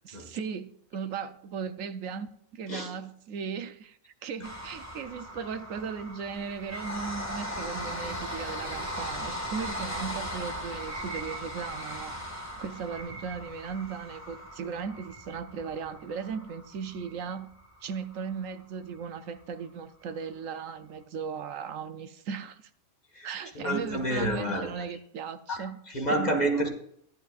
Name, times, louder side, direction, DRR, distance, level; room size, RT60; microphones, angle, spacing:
voice 1, 0.0-12.2 12.6-17.5 17.8-22.6 23.2-25.8 26.1-26.4, right 6 dB, 75° right, 1.1 m, -37 dB
sound 1, 4.4-18.5 19.0-19.1 19.3-19.4, equal, 10° left, 1.8 m, -38 dB
voice 2, 23.5-24.8 25.5-26.7, right 1 dB, 30° left, 1.7 m, -29 dB
15.5 x 10.5 x 2.5 m
omnidirectional pair, 1.4 m